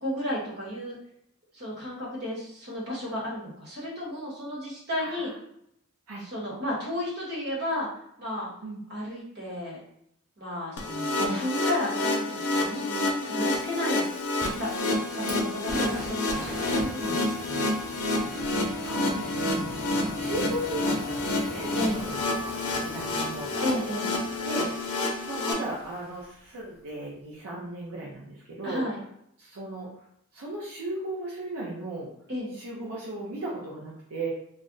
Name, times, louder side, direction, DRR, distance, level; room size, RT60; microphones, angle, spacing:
voice 1, 0.0-1.0 1.5-5.3 6.2-7.9 8.2-8.5 8.9-9.8 10.4-14.1 14.5-17.7 21.7-22.0 23.6-24.1 28.6-29.0 32.3-32.5, left 1 dB, 50° right, -5 dB, 1.2 m, -33 dB
voice 2, 5.0-5.3 6.1-6.2 8.6-8.8 12.7-13.4 18.7-23.6 24.4-28.8 29.4-29.9 30.3-32.1 32.5-34.3, right 1 dB, 75° right, -5 dB, 0.6 m, -37 dB
sound 1, 10.8-25.5, left 2 dB, 80° left, 0.6 m, -29 dB
Fire, 13.4-26.5, equal, 10° right, 0.9 m, -43 dB
2.4 x 2.1 x 3.9 m, 0.74 s
head